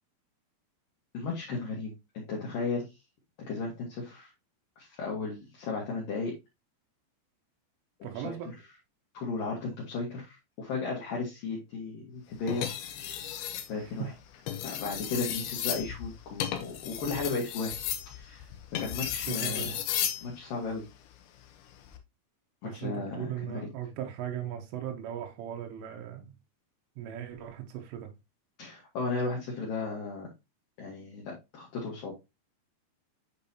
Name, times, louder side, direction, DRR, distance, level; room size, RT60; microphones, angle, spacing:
voice 1, 1.1-2.9 3.5-4.3 4.8-6.3 8.0-8.4 9.1-12.7 13.0-13.2 13.7-14.1 14.6-17.7 18.1-18.5 18.8-19.8 20.2-20.8 22.6-23.7 28.6-30.3 30.8-32.1, left 3 dB, 60° left, 2.7 m, -35 dB
voice 2, 8.0-8.5 13.8-14.1 19.0-19.7 22.6-26.3 27.0-28.1, right 10 dB, 85° right, 3.6 m, -38 dB
sound 1, 12.5-13.7 14.3-20.3 21.7-22.0, left 10 dB, 80° left, 2.2 m, -34 dB
8.1 x 5.3 x 2.7 m
omnidirectional pair, 5.6 m